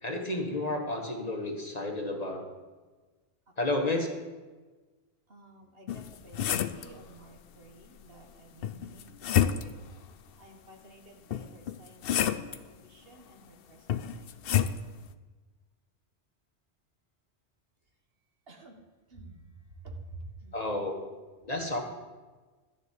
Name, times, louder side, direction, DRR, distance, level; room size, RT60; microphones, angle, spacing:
voice 1, 0.0-2.5 3.6-4.1 20.5-21.0 21.4-21.8, left 2 dB, 35° left, 2 dB, 1.5 m, -31 dB
voice 2, 5.3-9.7 10.4-12.2 12.5-14.3 18.5-18.8 19.1-20.5, right 2 dB, 60° right, 3 dB, 1.6 m, -51 dB
sound 1, 5.9-6.9 8.6-9.9 11.3-12.6 13.9-14.8, left 9 dB, 65° left, 0.8 m, -29 dB
12.5 x 7.2 x 8.3 m, 1.3 s
omnidirectional pair, 1.1 m